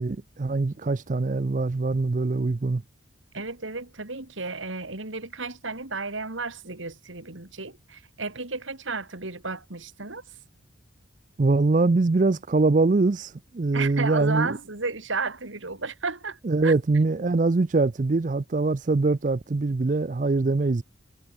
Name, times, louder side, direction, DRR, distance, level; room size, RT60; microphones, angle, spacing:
voice 1, 0.0-2.8 11.4-14.6 16.4-20.8, right 3 dB, 40° right, 0.4 m, -23 dB
voice 2, 3.3-10.2 13.7-16.7, right 3 dB, 75° right, 2.9 m, -33 dB
head